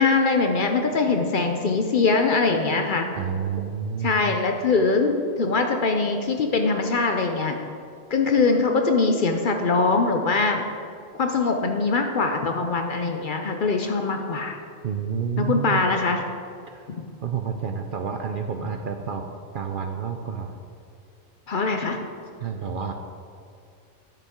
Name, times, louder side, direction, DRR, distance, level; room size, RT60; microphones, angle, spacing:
voice 1, 0.0-3.1 4.0-7.6 8.1-10.6 11.2-14.6 15.4-16.3 16.9-17.0 21.5-22.0, left 4 dB, 55° left, 4 dB, 0.7 m, -22 dB
voice 2, 3.1-4.1 14.8-15.9 16.7-16.9 17.2-19.2 19.5-20.5 22.4-22.9, right 7 dB, 60° right, 5 dB, 0.6 m, -29 dB
10.0 x 6.9 x 3.6 m, 2.4 s
omnidirectional pair, 1.2 m